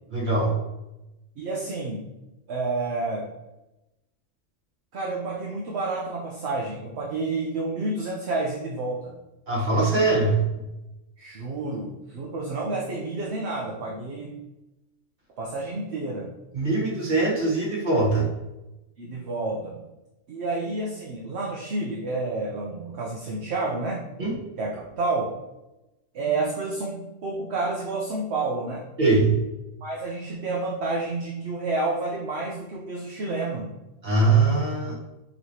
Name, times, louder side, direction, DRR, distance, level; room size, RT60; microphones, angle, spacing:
voice 1, 0.1-0.6 9.5-10.4 16.5-18.3 24.2-24.3 29.0-29.3 34.0-34.9, right 3 dB, 40° right, -4 dB, 1.4 m, -22 dB
voice 2, 1.4-2.1 2.5-3.3 4.9-9.1 11.2-14.4 15.4-16.3 19.0-19.8 20.3-24.0 24.6-25.3 26.1-28.8 29.8-33.7, right 3 dB, 60° right, -3 dB, 0.9 m, -29 dB
5.6 x 3.0 x 2.7 m, 0.97 s
omnidirectional pair, 1.4 m